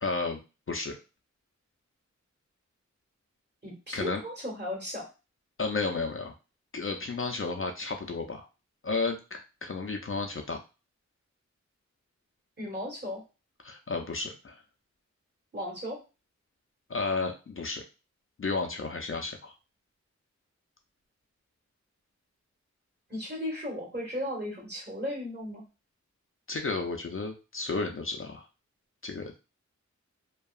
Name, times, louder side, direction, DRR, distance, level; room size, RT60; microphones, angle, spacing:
voice 1, 0.0-0.4 0.7-1.0 3.9-4.2 5.6-6.3 6.7-8.5 8.8-10.6 13.6-14.6 16.9-17.8 18.4-19.5 26.5-28.4 29.0-29.3, left 3 dB, 45° left, 3 dB, 0.4 m, -32 dB
voice 2, 3.6-5.1 12.6-13.2 15.5-16.0 23.1-25.6, left 1 dB, 35° right, -3 dB, 1.5 m, -35 dB
2.7 x 2.3 x 2.3 m, 0.30 s
wide cardioid pair, 50°, 30 cm